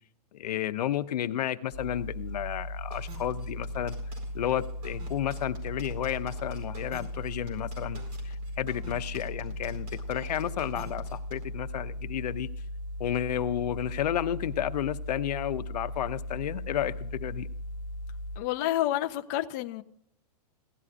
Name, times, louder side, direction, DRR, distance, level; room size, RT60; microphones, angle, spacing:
voice 1, 0.3-4.0 4.3-12.5 13.0-17.5, left 11 dB, 75° left, 0.8 m, -32 dB
sound 1, 1.7-18.4, left 1 dB, 20° right, 1.6 m, -38 dB
sound 2, 2.9-11.4, right 2 dB, 75° right, 4.5 m, -47 dB
voice 2, 18.4-19.8, left 14 dB, 25° left, 0.4 m, -29 dB
17.0 x 11.0 x 2.5 m
supercardioid pair, 165°, 21 cm